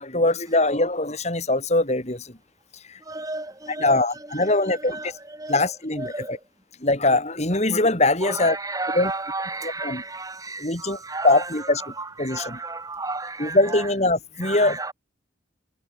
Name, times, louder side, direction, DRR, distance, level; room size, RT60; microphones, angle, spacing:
voice 1, 0.0-2.2 3.8-5.0 5.5-6.1 6.8-8.6 9.0-9.1 9.8-10.0 10.6-11.0 11.2-11.8 12.2-12.6 13.4-14.9, left 2 dB, 35° left, 3.6 m, -22 dB
voice 2, 3.0-6.5 8.2-13.9 14.3-14.9, right 3 dB, 20° right, 6.6 m, -33 dB
head